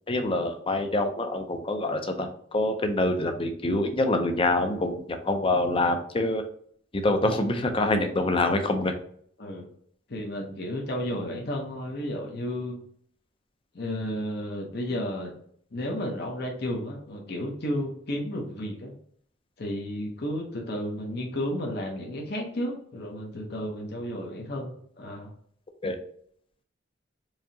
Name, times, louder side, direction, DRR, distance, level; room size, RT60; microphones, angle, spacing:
voice 1, 0.1-6.4 6.9-8.9 25.8-26.0, left 2 dB, 25° left, 6 dB, 0.5 m, -26 dB
voice 2, 10.1-12.8 13.7-15.3 15.7-18.9 19.6-25.3, equal, 55° left, 0 dB, 0.8 m, -32 dB
4.7 x 2.8 x 2.7 m, 0.63 s
head